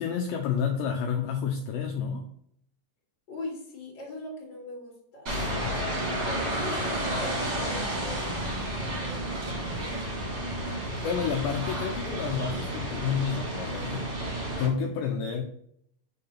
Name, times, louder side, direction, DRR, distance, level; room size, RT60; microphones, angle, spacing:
voice 1, 0.0-2.3 5.6-5.8 11.0-14.1 14.6-15.4, left 7 dB, 80° left, 2 dB, 2.5 m, -30 dB
voice 2, 3.3-6.0 6.3-8.3 8.8-9.5, left 2 dB, 30° left, -4 dB, 2.7 m, -41 dB
sound 1, 5.3-14.7, right 1 dB, 25° right, 2.7 m, -31 dB
6.3 x 5.8 x 5.6 m, 0.67 s
omnidirectional pair, 5.9 m